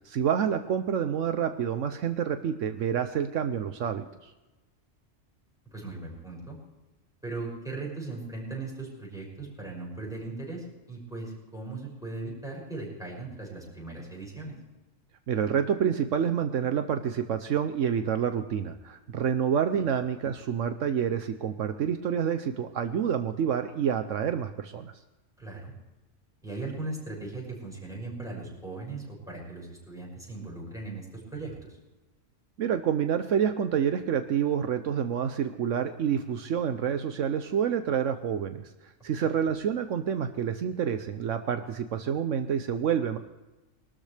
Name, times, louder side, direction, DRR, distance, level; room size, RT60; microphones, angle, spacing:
voice 1, 0.0-4.3 15.3-24.9 32.6-38.7 39.0-43.2, right 8 dB, 75° right, 8 dB, 1.1 m, -28 dB
voice 2, 5.7-6.6 7.2-14.5 19.7-19.8 25.4-25.7 26.4-31.8 39.2-39.3, right 3 dB, 5° right, -4 dB, 6.3 m, -38 dB
22.0 x 13.0 x 3.4 m, 1.1 s
omnidirectional pair, 1.3 m